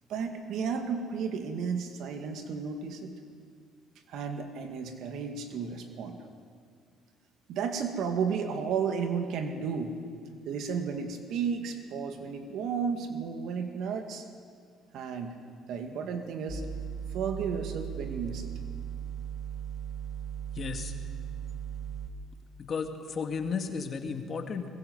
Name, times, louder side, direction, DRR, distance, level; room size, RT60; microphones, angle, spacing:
voice 1, 0.1-3.1 4.1-6.2 7.5-9.9 10.5-14.3 14.9-15.4 15.7-16.6 17.1-18.5, right 6 dB, 70° right, 5 dB, 2.1 m, -33 dB
sound 1, 16.5-22.1, right 8 dB, 35° right, 1.7 m, -37 dB
voice 2, 20.5-20.9 22.6-24.7, left 5 dB, 45° left, 5 dB, 2.1 m, -34 dB
22.0 x 20.5 x 8.0 m, 2.1 s
cardioid pair, 110°, 0 cm